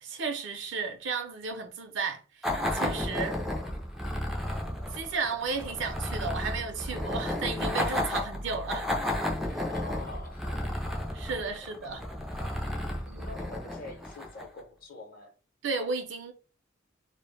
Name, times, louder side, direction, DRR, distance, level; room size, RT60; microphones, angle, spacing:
voice 1, 0.0-3.4 4.9-8.8 11.1-12.0 13.1-13.3 15.6-16.3, right 4 dB, 65° right, 0.5 m, -34 dB
sound 1, 2.4-14.6, left 1 dB, ahead, 0.3 m, -33 dB
voice 2, 9.4-10.7 11.5-11.6 12.8-15.3, left 2 dB, 45° left, 0.7 m, -46 dB
2.1 x 2.0 x 3.1 m
head